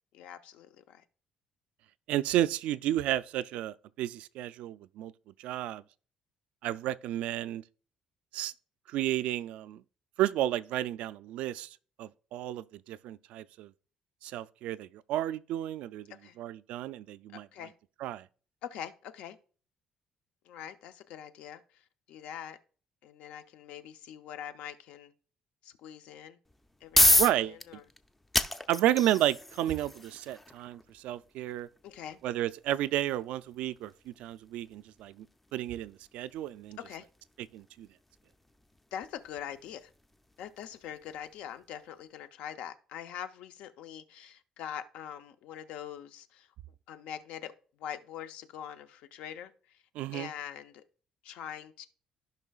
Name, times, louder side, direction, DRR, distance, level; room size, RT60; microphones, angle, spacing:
voice 1, 0.1-1.0 16.2-16.4 17.5-17.7 18.6-19.4 20.4-22.6 23.0-25.1 25.6-26.4 26.8-27.8 31.8-32.2 36.8-37.1 38.9-39.9 40.4-46.5 46.9-47.5 47.8-49.8 50.1-50.8 51.2-51.9, left 9 dB, 80° left, 0.6 m, -43 dB
voice 2, 2.1-5.1 5.4-5.8 6.6-7.6 8.3-8.5 8.9-9.8 10.2-13.7 14.2-16.1 16.4-17.5 18.0-18.3 27.1-27.6 28.7-31.7 32.2-35.3 35.5-36.8 37.5-37.9 49.9-50.3, right 13 dB, 80° right, 0.3 m, -32 dB
sound 1, 26.5-41.3, left 1 dB, 10° left, 0.4 m, -33 dB
14.5 x 5.5 x 2.4 m
cardioid pair, 160°, 2 cm